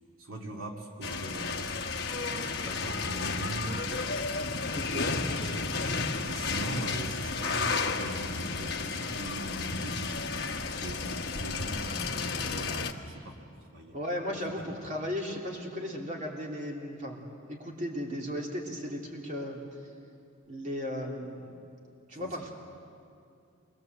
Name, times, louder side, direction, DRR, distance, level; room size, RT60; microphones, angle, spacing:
voice 1, 0.2-1.7 2.6-4.1 4.9-10.3 10.8-14.0 14.5-14.7 22.1-22.5, right 1 dB, 80° right, 0 dB, 2.4 m, -41 dB
sound 1, 1.0-12.9, left 4 dB, 50° left, 1.3 m, -32 dB
voice 2, 4.7-5.2 13.9-19.6 20.5-21.5 22.1-22.5, equal, 35° right, -1 dB, 3.2 m, -36 dB
28.0 x 22.0 x 8.0 m, 2.4 s
head